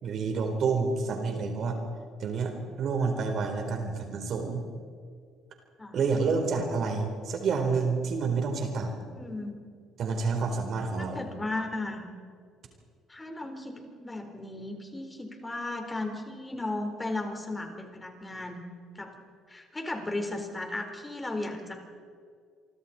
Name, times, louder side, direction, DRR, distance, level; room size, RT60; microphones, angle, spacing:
voice 1, 0.0-1.8 2.2-4.6 5.9-9.0 10.0-11.2, right 4 dB, 55° right, 4 dB, 4.3 m, -29 dB
voice 2, 9.1-9.6 11.1-12.0 13.1-18.6 18.9-19.1 19.5-21.8, left 2 dB, 20° left, 4 dB, 4.4 m, -35 dB
27.5 x 24.5 x 4.5 m, 2.1 s
hypercardioid pair, 60°, 0 cm